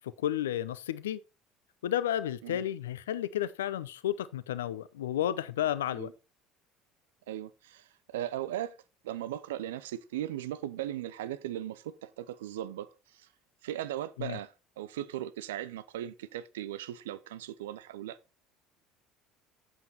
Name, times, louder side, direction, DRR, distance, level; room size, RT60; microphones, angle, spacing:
voice 1, 0.2-1.2 1.8-6.1 14.2-14.4, left 11 dB, 80° left, 0.6 m, -32 dB
voice 2, 7.3-8.8 9.0-13.3 13.6-18.2, right 12 dB, 75° right, 0.5 m, -38 dB
8.1 x 7.3 x 4.1 m
hypercardioid pair, 65°, 0 cm